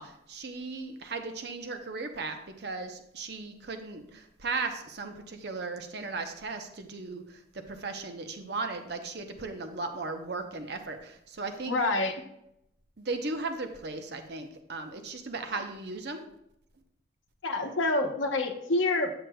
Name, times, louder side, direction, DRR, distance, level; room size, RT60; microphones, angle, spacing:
voice 1, 0.0-7.4 7.7-11.7 13.0-16.2, right 3 dB, 55° right, 6 dB, 0.7 m, -36 dB
voice 2, 11.7-12.1 17.4-19.1, left 2 dB, 75° left, 5 dB, 0.9 m, -27 dB
8.0 x 7.7 x 2.3 m, 0.79 s
head